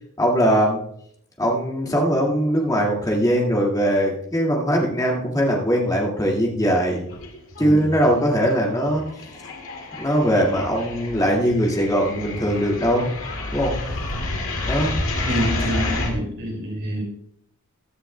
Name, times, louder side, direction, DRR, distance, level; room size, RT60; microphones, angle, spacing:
voice 1, 0.2-0.8 1.4-7.1 7.6-9.1 10.0-13.1 13.5-13.7 14.6-14.9, equal, 15° left, -2 dB, 2.0 m, -20 dB
sound 1, 7.1-7.8 8.0-16.1, left 2 dB, 65° left, 2.3 m, -29 dB
voice 2, 15.3-17.0, equal, 60° right, 1 dB, 3.6 m, -27 dB
16.0 x 10.5 x 2.2 m, 0.68 s
head